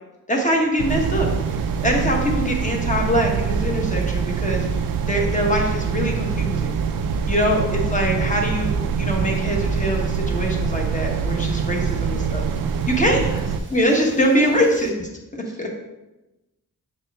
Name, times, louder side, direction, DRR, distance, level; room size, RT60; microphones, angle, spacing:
voice 1, 0.3-1.3 1.8-6.7 7.3-12.5 12.9-13.2 13.7-14.9 15.6-15.7, equal, 20° left, 0 dB, 1.1 m, -23 dB
sound 1, 0.8-13.6, right 6 dB, 80° right, 0.5 m, -24 dB
sound 2, 0.9-14.9, right 3 dB, 35° right, 0.8 m, -41 dB
voice 2, 14.1-14.6 15.4-15.7, right 1 dB, 10° right, 1 dB, 0.4 m, -41 dB
6.9 x 4.3 x 3.5 m, 1.0 s
wide cardioid pair, 150°, 34 cm